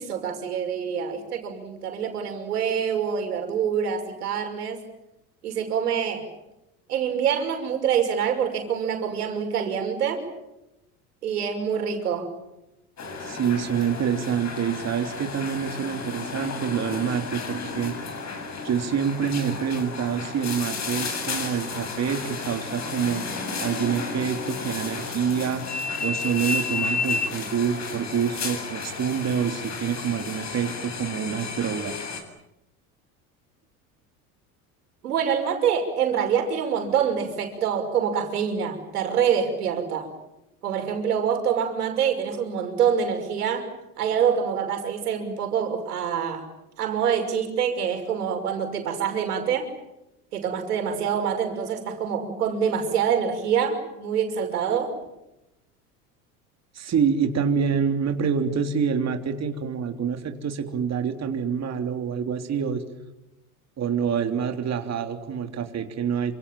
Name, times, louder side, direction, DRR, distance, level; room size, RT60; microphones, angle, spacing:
voice 1, 0.0-4.8 5.4-6.2 6.9-10.2 11.2-12.3 35.0-40.1 40.6-43.7 44.0-46.4 46.8-49.7 50.3-54.9, right 7 dB, 80° right, 4 dB, 6.1 m, -25 dB
sound 1, 13.0-32.2, left 4 dB, 35° left, 7.6 m, -32 dB
voice 2, 13.2-18.0 18.6-23.2 23.6-25.6 26.0-31.9 56.8-62.8 63.8-66.4, right 7 dB, 35° right, 5 dB, 3.4 m, -26 dB
29.0 x 26.5 x 7.5 m, 0.91 s
hypercardioid pair, 80°, 45 cm